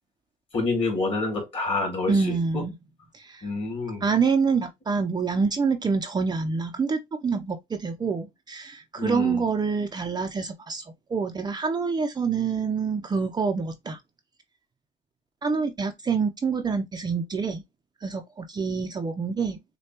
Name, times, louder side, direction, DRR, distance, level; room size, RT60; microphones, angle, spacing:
voice 1, 0.5-2.6 3.4-4.0 9.0-9.4, left 3 dB, 35° left, 2.6 m, -28 dB
voice 2, 2.1-2.7 3.1-3.5 4.0-10.8 11.1-14.0 15.4-17.6 18.0-19.6, right 5 dB, 25° right, 0.5 m, -26 dB
6.5 x 2.3 x 2.9 m
cardioid pair, 110°, 17 cm